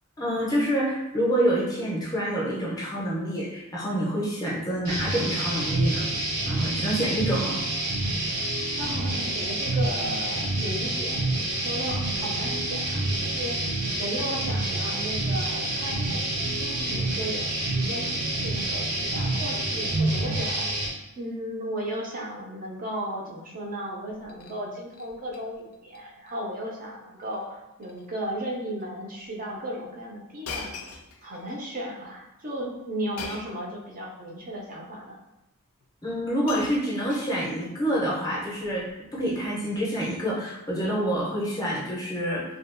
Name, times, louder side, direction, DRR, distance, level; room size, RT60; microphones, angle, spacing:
voice 1, 0.2-6.1 6.4-7.6 36.0-38.9 39.1-42.4, equal, 15° left, -5 dB, 0.5 m, -27 dB
sound 1, 4.8-20.9, right 2 dB, 85° right, 0.7 m, -28 dB
voice 2, 8.8-30.7 31.2-35.2, equal, 40° right, -3 dB, 0.4 m, -35 dB
Shatter, 24.1-24.6 24.9-25.4 25.7-26.0 26.3-26.4 27.2-27.5 27.8-28.1 28.8-28.9 30.4-31.6 33.2-33.7 34.7-34.8 35.8-35.9 36.2-37.7 38.6-38.9, left 5 dB, 80° left, 0.4 m, -41 dB
2.6 x 2.3 x 2.4 m, 0.90 s
head